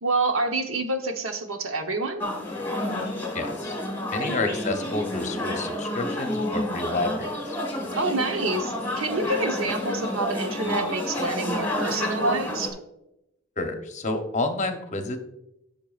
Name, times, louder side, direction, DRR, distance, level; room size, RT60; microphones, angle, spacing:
voice 1, 0.0-2.2 4.2-4.4 7.9-12.7, right 2 dB, 75° right, 5 dB, 1.0 m, -27 dB
sound 1, 2.2-12.7, left 1 dB, 10° left, 1.6 m, -30 dB
voice 2, 3.3-3.7 4.1-7.6 13.6-15.2, left 2 dB, 35° left, 6 dB, 0.8 m, -29 dB
14.0 x 5.6 x 2.4 m, 0.86 s
head